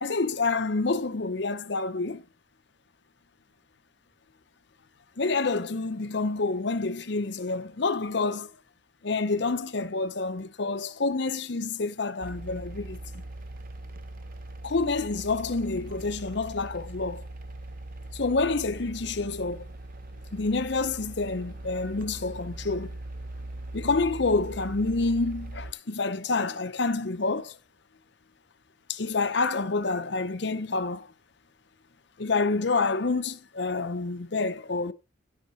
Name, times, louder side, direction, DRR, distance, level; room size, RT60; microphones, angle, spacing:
voice 1, 0.0-2.2 5.2-8.5 9.0-13.0 14.6-17.2 18.1-19.7 20.3-22.9 23.7-27.6 28.9-31.1 32.2-34.9, left 3 dB, 55° left, 0.7 m, -28 dB
sound 1, 12.2-25.7, right 1 dB, 45° right, 0.8 m, -40 dB
13.5 x 6.6 x 4.0 m
head